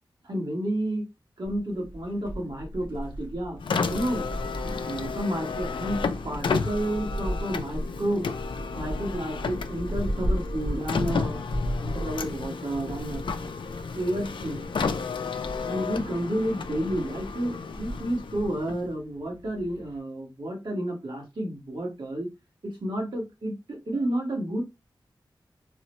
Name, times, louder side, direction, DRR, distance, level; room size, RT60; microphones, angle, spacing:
voice 1, 0.2-1.0 1.4-3.6 3.9-4.3 4.8-11.4 11.8-13.2 13.9-14.6 15.6-22.3 22.6-24.6, right 1 dB, 65° right, 0 dB, 1.2 m, -31 dB
sound 1, 1.4-20.0, equal, 85° right, 1.7 m, -36 dB
Car, 3.6-19.0, left 5 dB, 75° left, 0.3 m, -32 dB
3.8 x 2.0 x 2.9 m, 0.23 s
wide cardioid pair, 80°, 8 cm